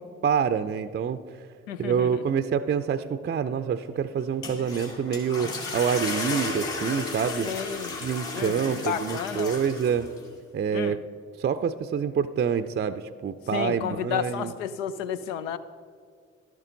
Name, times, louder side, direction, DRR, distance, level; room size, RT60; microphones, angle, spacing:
voice 1, 0.0-1.5 1.8-7.5 8.0-10.1 10.5-11.0 11.4-14.5, right 7 dB, 30° right, 11 dB, 0.5 m, -27 dB
voice 2, 1.7-2.2 7.4-8.0 8.3-9.6 10.7-11.0 13.5-15.6, left 9 dB, 85° left, 12 dB, 0.5 m, -32 dB
sound 1, 4.2-10.3, left 3 dB, 60° left, 2.4 m, -34 dB
12.0 x 11.0 x 3.9 m, 2.1 s
hypercardioid pair, 40°, 37 cm